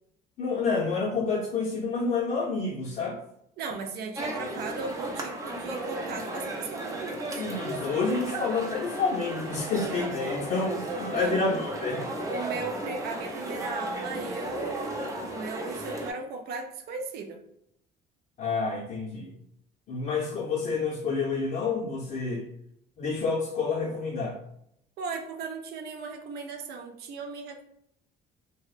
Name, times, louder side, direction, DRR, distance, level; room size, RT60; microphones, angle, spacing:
voice 1, 0.4-3.2 7.4-12.1 18.4-19.3 19.9-22.4 23.0-24.4, left 4 dB, 50° left, -5 dB, 0.6 m, -29 dB
voice 2, 3.6-7.4 11.0-11.4 12.3-15.0 15.3-17.4 25.0-27.6, right 4 dB, 70° right, 4 dB, 0.5 m, -37 dB
sound 1, 4.1-16.1, right 1 dB, 20° right, 0.5 m, -35 dB
2.8 x 2.0 x 2.4 m, 0.76 s
cardioid pair, 110°, 17 cm